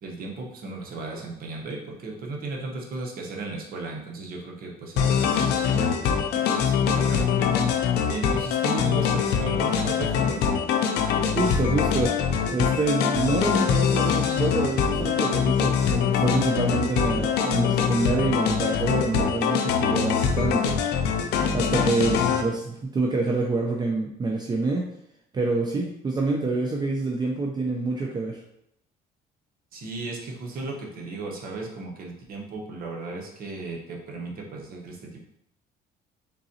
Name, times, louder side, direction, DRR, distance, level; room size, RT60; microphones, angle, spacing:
voice 1, 0.0-6.1 6.5-7.6 8.1-10.5 29.7-35.3, right 3 dB, 60° right, 0 dB, 1.0 m, -35 dB
sound 1, 5.0-22.4, left 7 dB, 80° left, 0.5 m, -23 dB
voice 2, 11.3-12.1 12.5-20.8 21.5-24.8 25.3-28.4, right 3 dB, 25° right, -1 dB, 0.5 m, -26 dB
3.9 x 3.7 x 2.8 m, 0.76 s
cardioid pair, 110°, 17 cm